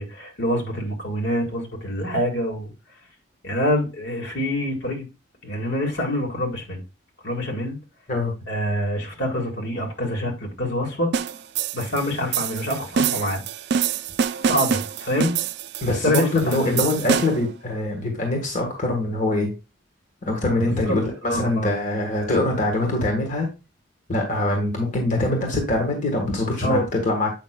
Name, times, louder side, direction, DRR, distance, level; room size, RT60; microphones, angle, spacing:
voice 1, 0.0-2.7 3.4-5.1 5.4-6.8 7.2-7.8 8.5-11.1 11.7-13.4 14.4-15.4 15.9-16.8 20.6-21.0 21.2-21.7 26.6-26.9, left 1 dB, 60° left, 1.8 m, -26 dB
sound 1, 11.1-17.5, right 7 dB, 55° right, 0.3 m, -26 dB
voice 2, 15.8-19.5 20.2-23.5 24.1-27.3, left 2 dB, 40° left, 1.5 m, -23 dB
8.2 x 5.4 x 2.2 m
head